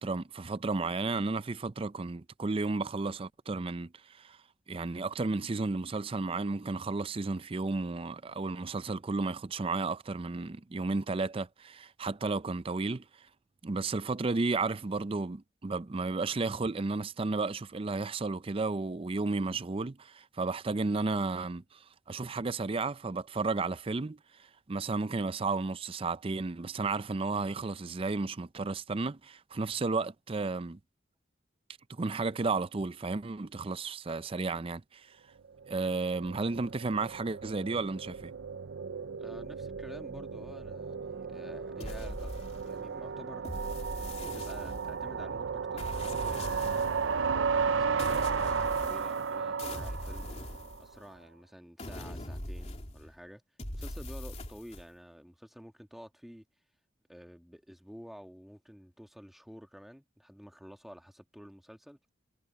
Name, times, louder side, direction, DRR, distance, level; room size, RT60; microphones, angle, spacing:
voice 1, 0.0-4.4 4.7-13.1 13.6-30.8 31.9-35.2 35.7-38.3, right 3 dB, 30° right, 0.5 m, -33 dB
sound 1, 35.6-50.8, right 5 dB, 85° right, 0.6 m, -34 dB
voice 2, 38.8-43.5 44.3-45.9 46.1-50.3 50.8-53.4 53.7-56.5 57.1-62.0, equal, ahead, 1.8 m, -50 dB
sound 2, 41.8-42.9 43.4-45.1 45.8-47.1 48.0-49.3 49.6-51.2 51.8-53.1 53.6-54.9, left 1 dB, 35° left, 2.9 m, -41 dB
head